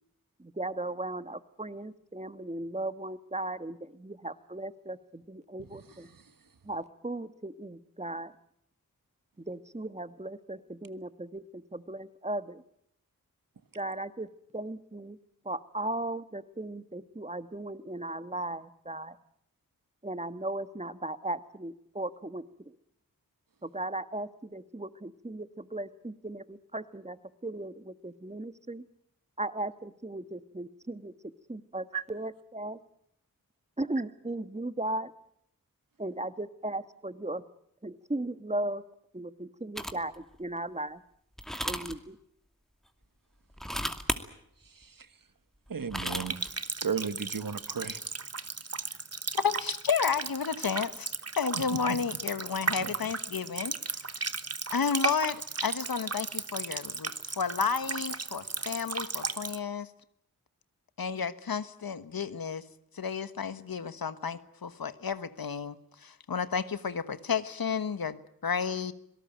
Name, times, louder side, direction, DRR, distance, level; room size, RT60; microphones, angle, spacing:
voice 1, 0.4-6.1 6.6-8.3 9.4-12.6 13.7-14.3 14.5-15.2 15.4-19.2 20.0-22.7 23.6-28.8 29.4-31.1 31.5-32.8 33.8-35.1 36.0-37.4 37.8-38.8 39.1-41.0 41.6-42.2, right 2 dB, 20° right, 12 dB, 1.4 m, -37 dB
sound 1, 39.8-40.1 41.4-42.0 43.5-44.2 45.7-46.5, equal, ahead, 2.5 m, -33 dB
voice 2, 45.7-46.5 46.8-48.0 51.9-52.0 52.8-52.9, right 6 dB, 65° right, 11 dB, 1.5 m, -34 dB
Water tap faucet, 46.3-59.6, right 4 dB, 45° right, 1.3 m, -36 dB
voice 3, 49.3-53.8 54.7-57.1 57.4-59.9 61.0-62.6 62.9-65.8 66.0-68.9, left 6 dB, 75° left, 13 dB, 1.3 m, -32 dB
26.0 x 18.0 x 9.1 m, 0.72 s
cardioid pair, 40°, 35 cm